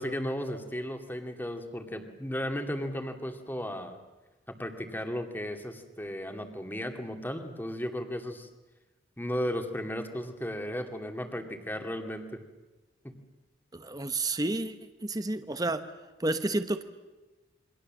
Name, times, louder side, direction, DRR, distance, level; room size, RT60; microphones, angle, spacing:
voice 1, 0.0-4.0 4.5-8.5 9.2-12.4 13.0-13.2, equal, 10° left, 5 dB, 2.3 m, -35 dB
voice 2, 13.7-14.8 15.0-15.8 16.2-16.8, right 2 dB, 20° right, 10 dB, 1.1 m, -30 dB
28.5 x 24.0 x 7.6 m, 1.2 s
head